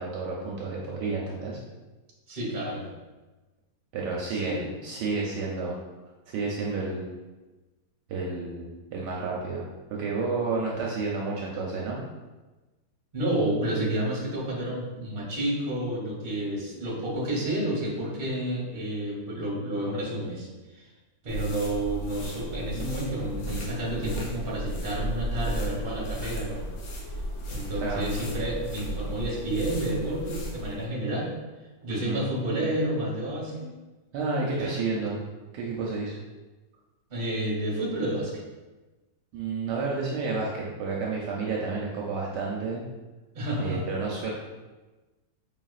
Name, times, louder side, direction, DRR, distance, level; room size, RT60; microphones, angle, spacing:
voice 1, 0.0-1.6 3.9-5.8 6.3-7.1 8.1-9.7 9.9-12.0 27.8-28.1 31.9-32.3 34.1-35.2 35.5-36.2 39.3-42.8 43.6-44.3, right 4 dB, 75° right, -3 dB, 1.1 m, -30 dB
voice 2, 2.3-2.9 4.3-4.7 13.1-20.5 20.7-20.8 21.2-26.7 27.5-31.3 31.8-33.7 34.6-34.8 37.1-38.4 43.3-43.8, right 1 dB, 40° right, -4 dB, 1.0 m, -30 dB
sound 1, 21.3-30.9, equal, 70° left, 1.3 m, -35 dB
4.9 x 3.0 x 2.4 m, 1.2 s
omnidirectional pair, 2.0 m